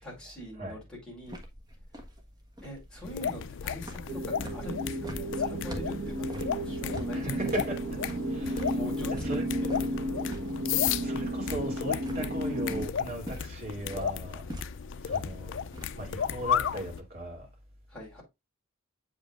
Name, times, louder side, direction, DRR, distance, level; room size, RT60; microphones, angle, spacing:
voice 1, 0.0-1.4 2.6-7.5 8.7-9.1 9.6-9.8 10.1-10.2 17.9-18.2, left 1 dB, 5° left, 4.2 m, -43 dB
sound 1, 1.2-16.1, left 1 dB, 20° right, 1.3 m, -45 dB
sound 2, 3.0-17.0, left 8 dB, 60° left, 0.4 m, -34 dB
sound 3, 4.1-12.9, right 1 dB, 70° right, 1.1 m, -33 dB
voice 2, 7.1-7.8 8.3-8.8 9.1-9.4 11.0-14.5 15.0-15.7 16.0-17.5, right 1 dB, 45° right, 2.8 m, -37 dB
7.9 x 5.3 x 2.4 m
head